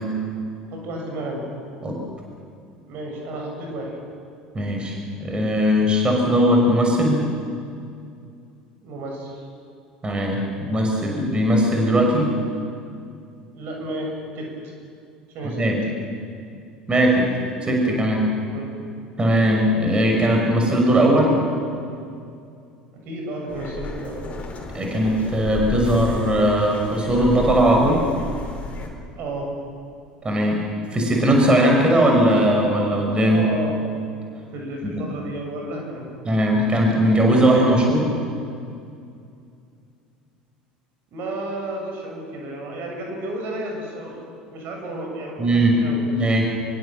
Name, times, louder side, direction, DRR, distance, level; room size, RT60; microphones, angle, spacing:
voice 1, 0.7-1.4 2.8-4.0 8.8-9.5 13.5-14.1 14.4-14.5 15.3-15.6 18.5-18.7 23.1-24.4 29.2-29.5 33.3-33.8 34.5-36.1 41.1-46.1, right 1 dB, 50° right, 0 dB, 7.0 m, -32 dB
voice 2, 4.5-7.2 10.0-12.3 15.4-15.8 16.9-17.3 17.6-18.3 19.2-21.4 24.7-28.0 30.2-30.6 30.9-33.4 34.9-35.0 36.2-38.1 45.4-45.8 46.1-46.5, equal, 20° right, 1 dB, 6.2 m, -19 dB
sound 1, 23.5-28.9, left 2 dB, 30° left, 5.0 m, -33 dB
24.5 x 23.5 x 7.6 m, 2.4 s
figure-of-eight pair, 70°, 4 cm